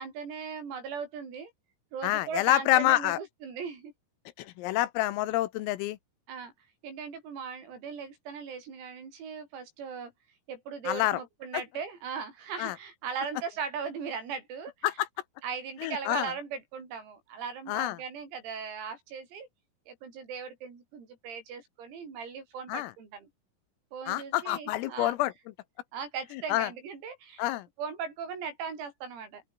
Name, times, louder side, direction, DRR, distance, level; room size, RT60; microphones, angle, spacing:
voice 1, 0.0-1.5 1.9-3.9 6.3-6.5 6.8-10.1 10.5-14.9 15.4-19.5 19.9-23.3 23.9-25.1 25.9-27.5 27.8-29.4, right 6 dB, 85° right, 9.3 m, -38 dB
voice 2, 2.0-3.2 4.4-6.0 10.9-11.2 12.6-12.8 14.8-15.1 15.8-16.3 17.7-18.0 22.7-22.9 24.1-25.3 26.5-26.7 27.4-27.7, left 16 dB, 85° left, 3.8 m, -27 dB
open air
omnidirectional pair, 6.0 m